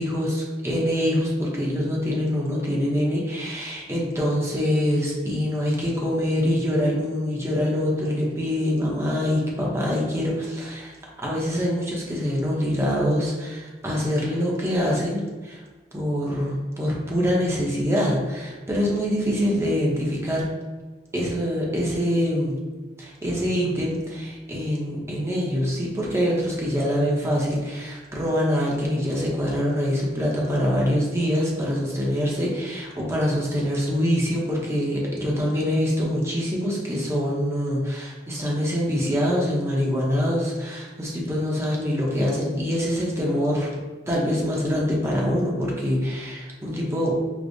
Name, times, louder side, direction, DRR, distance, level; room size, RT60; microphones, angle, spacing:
voice 1, 0.0-15.6 15.9-20.5 21.1-22.6 23.0-47.2, equal, 15° right, -3 dB, 0.6 m, -24 dB
4.9 x 2.0 x 2.6 m, 1.3 s
head